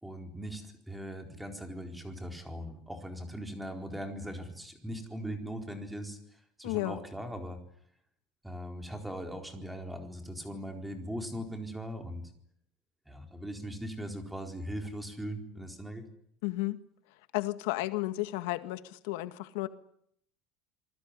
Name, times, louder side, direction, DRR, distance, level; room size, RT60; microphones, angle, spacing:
voice 1, 0.0-6.2 6.6-7.6 8.4-12.2 13.1-16.0, equal, 5° right, 4 dB, 4.3 m, -40 dB
voice 2, 6.6-7.0 16.4-16.8 17.3-19.7, left 18 dB, 85° left, 10 dB, 1.8 m, -33 dB
27.5 x 20.0 x 10.0 m, 0.71 s
cardioid pair, 160°, 0 cm